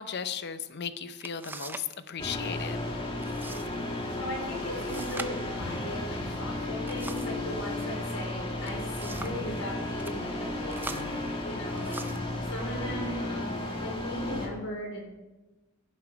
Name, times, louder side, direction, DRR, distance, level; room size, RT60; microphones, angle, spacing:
voice 1, 0.0-2.9, left 7 dB, 50° left, 12 dB, 0.7 m, -36 dB
sound 1, 0.7-0.8 1.2-2.0 2.2-2.7 3.2-3.7 4.0-4.1 4.8-7.4 8.4-9.5 9.9-10.2 10.7-12.3 13.1-13.3 13.8-14.3, right 2 dB, 10° right, 0.5 m, -43 dB
sound 2, 2.2-14.5, left 2 dB, 25° left, 1.8 m, -34 dB
voice 2, 4.2-13.6 13.8-15.0, equal, 85° left, 0 dB, 4.1 m, -38 dB
16.0 x 7.4 x 4.9 m, 1.1 s
head